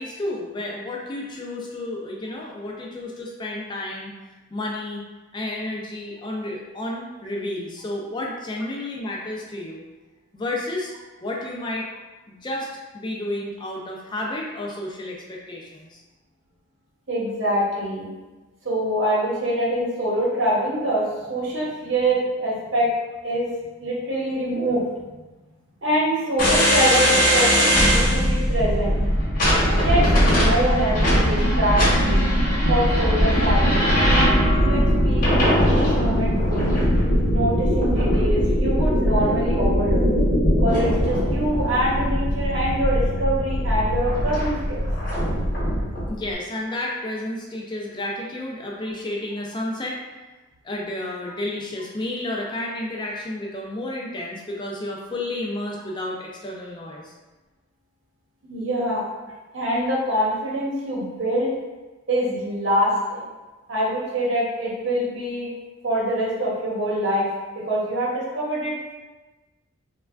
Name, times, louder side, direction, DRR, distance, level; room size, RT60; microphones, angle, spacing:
voice 1, 0.0-4.2 4.5-5.0 5.3-9.8 10.3-10.9 11.2-11.9 12.4-16.0 46.1-50.0 50.6-57.1, left 1 dB, 20° left, -2 dB, 0.3 m, -31 dB
voice 2, 17.1-18.1 18.6-22.9 23.2-23.5 23.8-24.9 25.8-28.9 29.8-32.2 32.7-33.8 34.6-36.7 37.3-40.0 40.6-44.8 58.5-59.0 59.5-61.5 62.1-63.2 63.7-65.5 65.8-67.3 67.5-68.9, right 1 dB, 65° right, -5 dB, 0.8 m, -24 dB
sound 1, 26.4-46.1, equal, 40° left, 0.9 m, -20 dB
3.3 x 2.2 x 2.3 m, 1.2 s
head